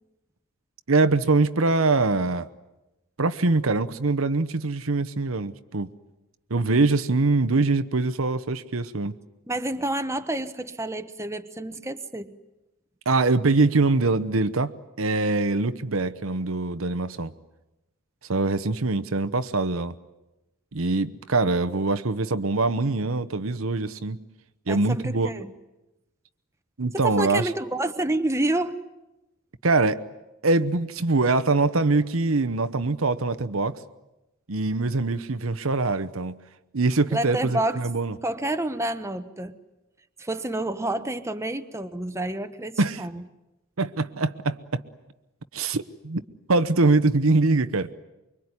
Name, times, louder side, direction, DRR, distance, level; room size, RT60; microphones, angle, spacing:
voice 1, 0.9-2.5 3.2-5.9 6.5-9.1 13.1-14.7 15.0-17.3 18.3-19.9 20.7-24.2 24.7-25.3 26.8-27.5 29.6-30.0 30.4-33.8 34.5-36.4 36.7-38.1 42.8-43.0 43.8-44.8 45.5-46.2 46.5-47.9, right 3 dB, 70° right, 11 dB, 1.0 m, -23 dB
voice 2, 9.5-12.3 24.7-25.5 26.9-28.8 37.1-37.8 38.2-39.6 40.2-43.2, right 1 dB, 15° right, 8 dB, 1.0 m, -29 dB
24.5 x 23.5 x 9.7 m, 0.99 s
head